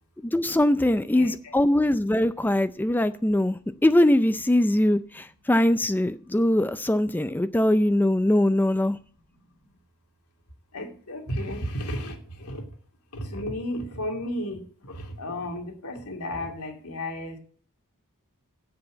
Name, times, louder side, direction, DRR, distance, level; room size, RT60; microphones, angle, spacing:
voice 1, 0.2-9.0, left 1 dB, 10° left, 12 dB, 0.4 m, -22 dB
voice 2, 1.1-1.5 10.7-12.6 13.1-17.4, left 1 dB, 85° left, 3 dB, 2.8 m, -33 dB
8.3 x 7.7 x 8.4 m, 0.43 s
head